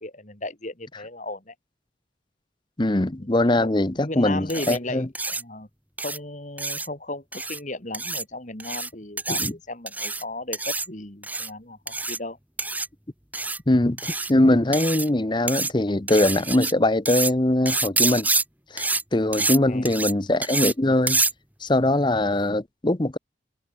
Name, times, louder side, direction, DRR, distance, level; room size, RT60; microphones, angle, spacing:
voice 1, 0.0-1.5 3.2-3.3 3.6-5.7 6.0-12.4 19.4-19.9, left 2 dB, 40° left, 3.2 m, -35 dB
voice 2, 2.8-5.1 9.3-9.5 13.7-18.3 18.7-21.2 21.6-23.2, left 1 dB, 25° left, 0.8 m, -22 dB
sound 1, 4.5-4.8 5.1-5.4 6.0-6.2 6.6-6.9 7.3-7.6 7.9-8.2 8.6-8.9 9.2-9.5 9.9-10.2 10.5-10.9 11.2-11.5 11.9-12.2 12.6-12.9 13.3-13.6 14.0-14.3 14.7-15.1 15.5-15.7 16.1-16.7 17.1-17.3 17.7-18.4 18.8-19.0 19.3-19.6 19.8-20.1 20.4-20.7 21.1-21.3, right 3 dB, 10° right, 2.8 m, -26 dB
head